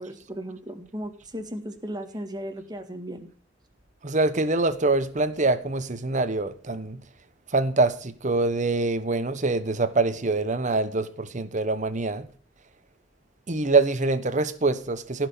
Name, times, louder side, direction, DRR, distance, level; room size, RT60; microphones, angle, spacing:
voice 1, 0.0-3.3, equal, 20° right, 1.8 m, -36 dB
voice 2, 4.0-7.0 7.5-12.3 13.5-15.3, right 3 dB, 40° right, 1.1 m, -24 dB
16.0 x 6.1 x 6.9 m
head